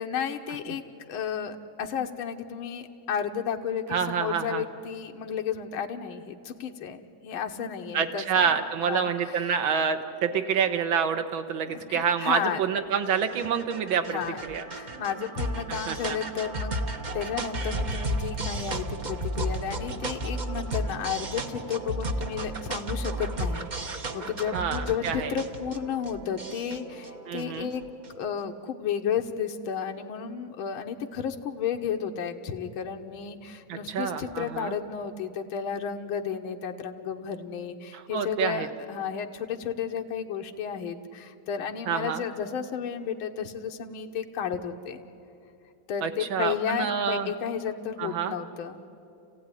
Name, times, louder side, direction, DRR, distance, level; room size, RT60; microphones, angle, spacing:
voice 1, 0.0-9.6 11.7-12.6 14.1-14.4 14.7-27.8 28.1-45.0 45.9-48.8, left 7 dB, 80° left, 4 dB, 1.9 m, -33 dB
voice 2, 3.9-4.6 7.9-14.2 14.5-14.6 15.7-16.2 24.5-25.3 27.3-27.7 33.7-34.7 37.9-38.7 41.9-42.2 46.0-47.3 48.0-48.3, right 7 dB, 70° right, 7 dB, 1.9 m, -27 dB
sound 1, 12.7-28.2, right 1 dB, 50° right, 0.5 m, -34 dB
30.0 x 15.5 x 9.9 m, 2.7 s
omnidirectional pair, 2.3 m